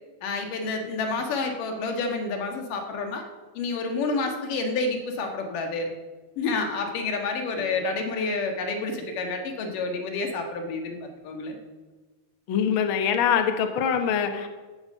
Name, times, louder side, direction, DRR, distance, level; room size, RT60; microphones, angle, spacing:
voice 1, 0.2-3.3 3.6-5.9 6.4-11.6, left 3 dB, 65° left, 3 dB, 3.1 m, -29 dB
voice 2, 12.5-14.5, left 7 dB, 85° left, 6 dB, 1.1 m, -24 dB
15.0 x 9.1 x 6.5 m, 1.3 s
omnidirectional pair, 4.2 m